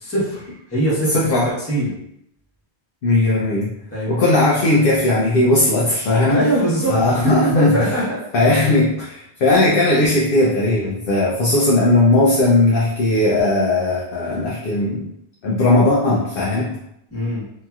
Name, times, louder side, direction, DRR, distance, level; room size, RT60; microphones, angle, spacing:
voice 1, 0.0-1.3 1.6-1.9 3.9-4.3 6.3-7.0 7.2-8.2 17.1-17.4, right 1 dB, 15° left, -9 dB, 1.0 m, -22 dB
voice 2, 1.1-1.5 3.0-3.7 4.1-6.4 6.9-7.9 8.3-15.1 15.4-16.7, left 2 dB, 60° left, -4 dB, 0.7 m, -17 dB
2.8 x 2.8 x 2.3 m, 0.78 s
omnidirectional pair, 1.1 m